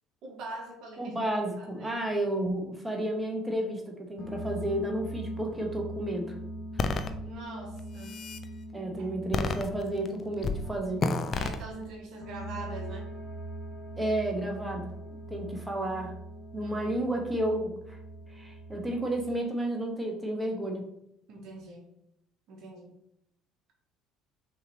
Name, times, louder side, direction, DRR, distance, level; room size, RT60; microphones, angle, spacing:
voice 1, 0.2-1.2 1.6-2.1 7.2-8.2 9.0-9.1 11.4-13.1 16.6-17.0 21.3-21.8 22.5-22.9, right 2 dB, 65° right, 1 dB, 1.0 m, -43 dB
voice 2, 1.0-6.3 8.7-11.1 14.0-14.9 15.3-16.1 16.5-18.0 18.3-20.9, right 1 dB, 10° right, 1 dB, 1.1 m, -32 dB
sound 1, 4.2-19.3, right 1 dB, 60° left, 0.9 m, -42 dB
sound 2, 6.8-7.1 7.8-8.4 9.3-10.1 10.4-10.6 11.0-11.6, left 3 dB, 45° left, 0.5 m, -29 dB
5.5 x 3.1 x 3.0 m, 0.77 s
hypercardioid pair, 60°, 0 cm